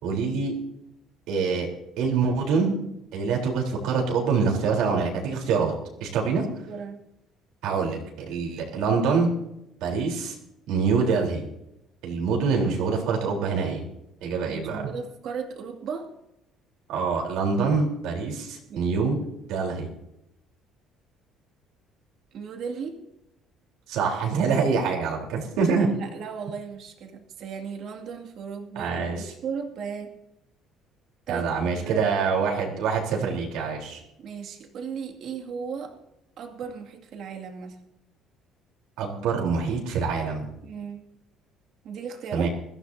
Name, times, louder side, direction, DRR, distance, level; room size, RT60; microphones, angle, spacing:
voice 1, 0.0-0.5 1.3-1.7 2.0-2.8 3.1-5.7 6.0-6.4 7.6-8.0 8.3-9.3 9.8-10.4 10.7-11.5 12.0-13.8 14.2-14.8 16.9-19.2 19.5-19.9 23.9-25.9 28.8-29.2 31.3-34.0 39.0-40.5 42.3-42.5, right 5 dB, 80° right, 0 dB, 3.7 m, -25 dB
voice 2, 6.7-7.0 14.5-16.1 18.7-18.8 22.3-23.0 25.8-30.1 31.3-32.5 34.2-36.0 36.4-37.8 40.6-41.0 41.8-42.5, right 6 dB, 55° right, 4 dB, 2.3 m, -36 dB
21.5 x 14.5 x 2.7 m, 0.85 s
cardioid pair, 155°, 0 cm